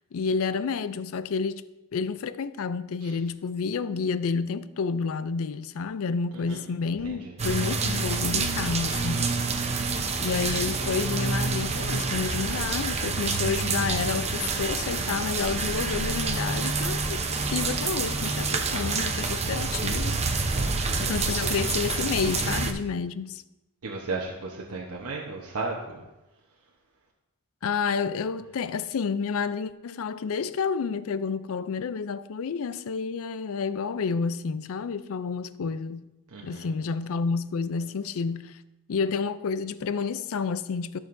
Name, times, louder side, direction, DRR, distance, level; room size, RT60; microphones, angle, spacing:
voice 1, 0.1-1.6 1.9-9.4 10.2-17.2 17.5-20.2 21.0-23.4 27.6-36.1 36.4-38.6 38.9-41.0, left 5 dB, 70° left, 0.4 m, -30 dB
voice 2, 7.0-7.3 19.4-19.8 20.5-21.2 23.8-26.0 36.3-36.7, right 3 dB, 90° right, 1.0 m, -36 dB
sound 1, 7.4-22.7, right 4 dB, 30° right, 0.7 m, -28 dB
14.0 x 6.4 x 2.6 m
head